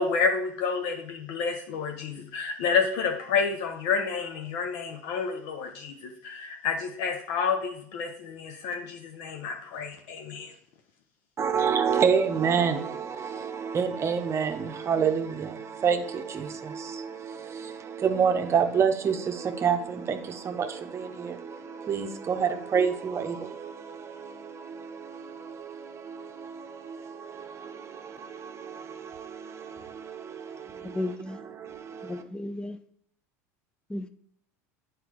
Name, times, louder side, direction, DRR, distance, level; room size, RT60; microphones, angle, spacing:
voice 1, 0.0-10.5, left 5 dB, 65° left, 0.7 m, -29 dB
voice 2, 11.4-32.2, right 6 dB, 35° right, 0.8 m, -29 dB
voice 3, 30.8-31.4 32.0-32.8 33.9-34.1, left 1 dB, 10° left, 0.5 m, -34 dB
8.1 x 4.7 x 3.0 m
hypercardioid pair, 85°, 8 cm